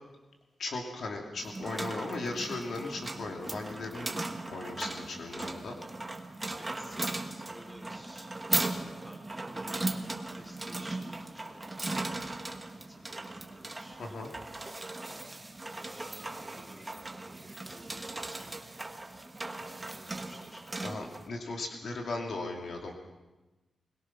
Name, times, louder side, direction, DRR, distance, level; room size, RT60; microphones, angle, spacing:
voice 1, 0.6-4.1 4.5-5.7 14.0-14.3 20.8-22.9, left 2 dB, 60° left, 1 dB, 2.6 m, -37 dB
sound 1, 1.4-21.3, right 2 dB, 15° right, 1.4 m, -38 dB
voice 2, 6.6-12.2 12.9-14.4 15.8-18.7 19.6-20.6, equal, 5° left, 1 dB, 4.0 m, -53 dB
22.0 x 21.0 x 5.9 m, 1.1 s
wide cardioid pair, 165°, 0 cm